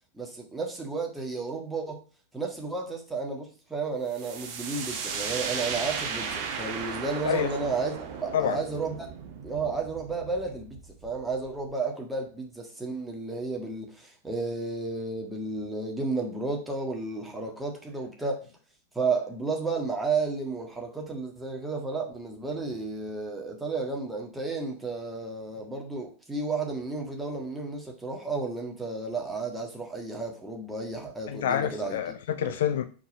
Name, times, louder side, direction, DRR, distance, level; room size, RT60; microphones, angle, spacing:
voice 1, 0.1-2.0 2.3-7.9 8.2-8.9 9.4-18.5 18.9-32.0 32.4-32.5, right 3 dB, 5° right, 1.6 m, -32 dB
sound 1, 4.1-11.7, right 6 dB, 45° right, 1.1 m, -36 dB
voice 2, 31.3-32.8, left 9 dB, 60° left, 0.5 m, -27 dB
4.6 x 4.6 x 5.5 m
figure-of-eight pair, 90°, 0 cm